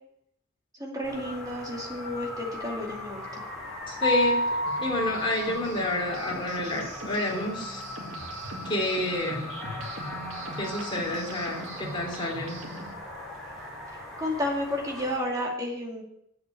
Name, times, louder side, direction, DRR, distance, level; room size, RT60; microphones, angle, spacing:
voice 1, 0.8-3.3 14.2-16.0, left 1 dB, 20° right, -1 dB, 2.4 m, -31 dB
sound 1, 1.0-15.2, left 1 dB, ahead, 4.5 m, -39 dB
voice 2, 3.9-7.8 8.6-9.5 10.6-12.6, left 1 dB, 25° left, -1 dB, 3.2 m, -29 dB
Mallet percussion, 4.0-5.8, left 1 dB, 85° left, 1.3 m, -28 dB
sound 2, 4.6-12.9, right 1 dB, 80° right, 2.2 m, -41 dB
8.2 x 7.7 x 8.4 m, 0.78 s
head